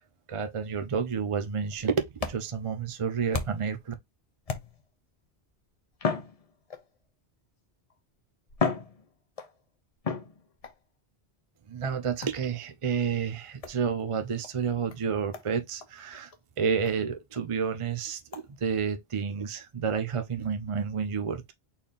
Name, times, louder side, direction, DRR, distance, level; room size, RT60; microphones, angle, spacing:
voice 1, 0.3-3.9 11.7-21.5, right 6 dB, 35° right, 0.6 m, -30 dB
sound 1, 1.7-3.8 4.4-5.0 5.9-7.0 7.9-8.0 8.5-9.6 10.0-10.8 12.2-12.5 13.6-13.8 14.4-14.5 14.9-15.0 15.3-15.5 15.8-15.9 16.3-16.4 16.8-16.9 17.3-17.4 18.3-18.5, left 4 dB, 35° left, 0.8 m, -34 dB
4.4 x 3.3 x 3.6 m
omnidirectional pair, 1.1 m